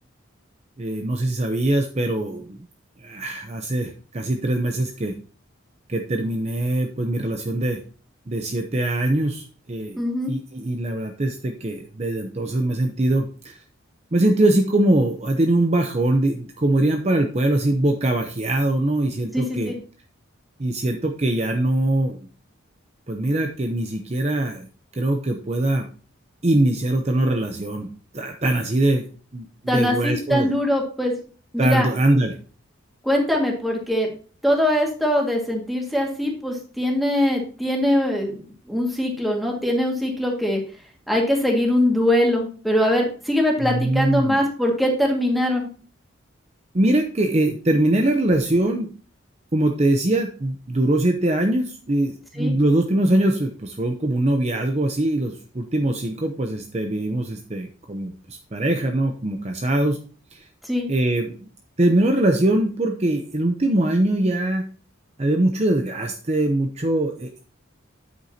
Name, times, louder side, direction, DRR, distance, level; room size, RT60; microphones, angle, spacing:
voice 1, 0.8-2.6 3.0-5.1 5.9-7.8 8.3-10.0 10.3-13.5 14.1-19.7 20.6-22.2 23.1-24.7 25.0-25.8 26.4-29.0 29.3-30.5 31.6-32.4 43.6-44.4 46.7-48.9 49.5-60.0 60.3-60.5 60.9-61.5 61.8-64.6 65.2-67.3, right 1 dB, 30° right, 4 dB, 0.7 m, -22 dB
voice 2, 10.0-10.3 19.3-19.7 29.7-31.1 31.5-31.9 33.0-34.1 34.4-38.4 38.7-40.6 41.1-45.7 52.4-52.5 60.6-60.9, left 1 dB, ahead, -1 dB, 1.9 m, -22 dB
9.3 x 8.1 x 2.8 m, 0.40 s
head